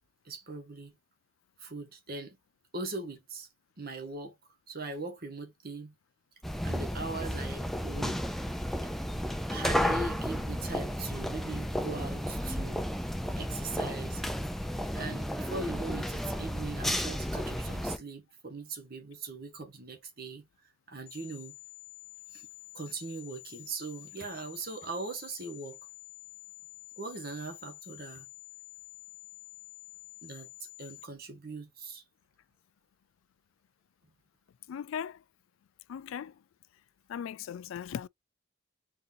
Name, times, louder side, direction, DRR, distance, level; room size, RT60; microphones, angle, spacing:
voice 1, 0.2-1.0 1.6-2.4 2.7-3.5 3.8-4.4 4.7-5.9 6.6-8.3 9.5-12.8 13.3-14.2 14.9-20.5 20.9-21.5 22.3-22.5 22.7-25.8 27.0-28.3 30.2-32.0, right 3 dB, 50° right, 1.3 m, -40 dB
sound 1, 6.4-18.0, equal, ahead, 0.4 m, -33 dB
sound 2, 21.1-31.1, left 25 dB, 65° left, 1.0 m, -50 dB
voice 2, 34.7-35.2 35.9-36.4 37.1-38.1, left 8 dB, 80° left, 0.3 m, -38 dB
3.9 x 3.8 x 2.6 m
head